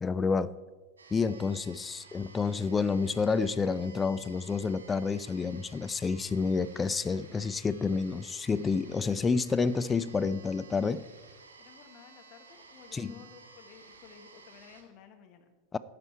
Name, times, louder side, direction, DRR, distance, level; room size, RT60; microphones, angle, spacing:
voice 1, 0.0-0.5 1.1-11.0 12.9-13.1 15.7-15.8, left 4 dB, 15° left, 16 dB, 0.4 m, -29 dB
sound 1, 1.0-14.8, right 4 dB, 70° right, 2.2 m, -54 dB
voice 2, 1.4-1.7 2.0-2.1 11.6-15.5, left 7 dB, 40° left, 6 dB, 1.4 m, -55 dB
12.5 x 8.7 x 4.5 m, 1.3 s
figure-of-eight pair, 90°, 0 cm